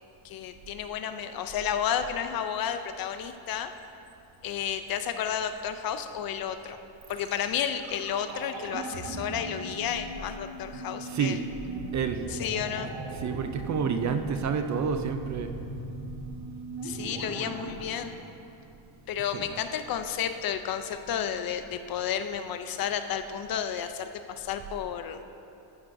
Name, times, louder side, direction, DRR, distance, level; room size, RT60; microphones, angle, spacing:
voice 1, 0.2-3.7 4.4-6.8 7.1-11.4 12.3-12.9 16.8-18.2 19.1-25.2, left 8 dB, 50° left, 8 dB, 0.5 m, -32 dB
sound 1, 7.0-19.0 19.3-19.4, right 2 dB, 70° right, 1.3 m, -39 dB
voice 2, 11.1-11.4 11.9-12.3 13.1-15.5 19.3-19.6, right 6 dB, 40° right, 7 dB, 0.4 m, -29 dB
14.5 x 9.4 x 2.6 m, 2.8 s
cardioid pair, 155°, 48 cm